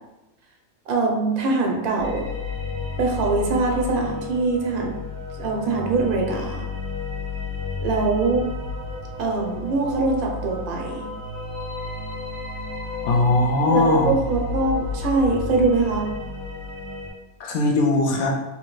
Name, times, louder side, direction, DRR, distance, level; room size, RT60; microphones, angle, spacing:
voice 1, 0.9-2.3 3.0-4.9 5.4-6.7 7.8-8.4 9.2-11.1 13.7-16.1, right 3 dB, 80° right, 0 dB, 1.2 m, -23 dB
sound 1, 2.0-17.1, left 4 dB, 15° left, 1.3 m, -32 dB
voice 2, 13.1-14.1 17.4-18.3, left 2 dB, 85° left, 0 dB, 1.1 m, -20 dB
3.6 x 2.8 x 3.0 m, 1.0 s
omnidirectional pair, 1.5 m